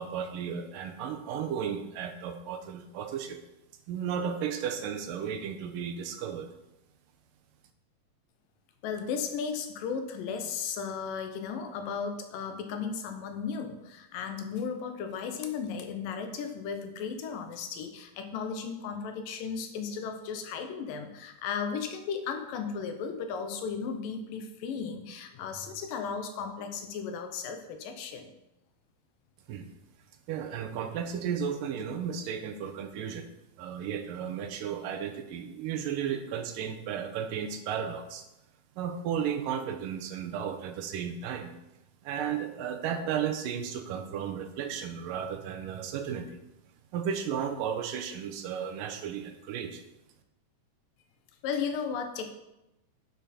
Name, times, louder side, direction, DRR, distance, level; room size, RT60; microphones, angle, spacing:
voice 1, 0.0-3.4 3.9-6.5 29.5-29.7 30.3-33.3 33.6-38.3 38.8-41.5 42.0-46.4 46.9-49.8, right 8 dB, 80° right, 6 dB, 2.4 m, -34 dB
voice 2, 8.8-28.3 51.4-52.3, left 6 dB, 80° left, 6 dB, 2.6 m, -35 dB
10.5 x 6.3 x 4.2 m, 0.91 s
omnidirectional pair, 4.0 m